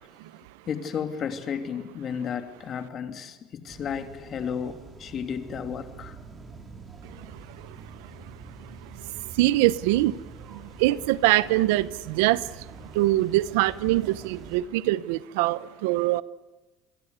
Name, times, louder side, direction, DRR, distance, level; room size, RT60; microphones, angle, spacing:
voice 1, 0.6-6.2, left 7 dB, 40° left, 2.9 m, -33 dB
sound 1, 3.7-14.6, right 4 dB, 30° right, 4.7 m, -45 dB
voice 2, 9.4-10.1 10.8-12.4 13.0-16.2, right 17 dB, 85° right, 0.9 m, -23 dB
29.0 x 23.0 x 8.2 m
supercardioid pair, 120°, 0 cm